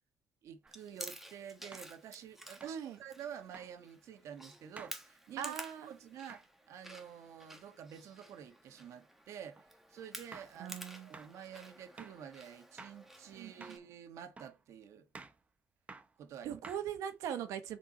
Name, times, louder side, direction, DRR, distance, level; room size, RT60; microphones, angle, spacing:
voice 1, 0.4-5.6 5.9-15.1 16.2-16.6, right 8 dB, 70° right, 1.4 m, -49 dB
sound 1, 0.6-0.8 1.7-2.0 2.6-2.8 3.5-3.7 4.8-5.0 6.3-6.5 9.6-9.7 10.3-10.6 11.1-11.3 12.0-12.2 12.8-13.0 13.6-13.9 14.4-14.6 15.1-15.4 15.9-16.1 16.6-17.1, right 3 dB, 25° right, 0.9 m, -52 dB
Chewing mastication, 0.7-13.8, right 1 dB, 5° right, 1.3 m, -52 dB
voice 2, 2.6-3.0 5.4-5.9 10.6-11.1 13.4-13.8 16.4-17.8, right 9 dB, 90° right, 1.2 m, -40 dB
6.8 x 4.5 x 4.4 m
cardioid pair, 125°, 5 cm